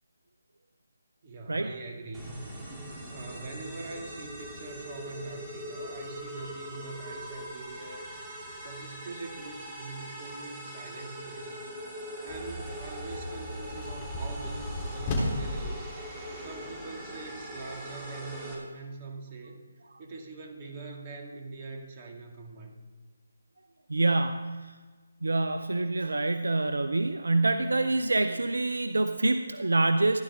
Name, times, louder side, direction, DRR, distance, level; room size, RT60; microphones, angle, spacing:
voice 1, 1.2-2.5 3.1-8.1 8.6-11.5 12.2-15.9 16.4-19.6 20.0-22.7, right 3 dB, 30° right, 1 dB, 2.4 m, -43 dB
sound 1, 2.1-18.5, equal, 10° right, 3.0 m, -41 dB
sound 2, 12.3-15.7, left 1 dB, 25° left, 3.5 m, -34 dB
voice 2, 23.9-24.8 25.2-30.2, right 2 dB, 75° right, 9 dB, 0.7 m, -26 dB
15.5 x 10.5 x 3.7 m, 1.4 s
figure-of-eight pair, 150°, 0 cm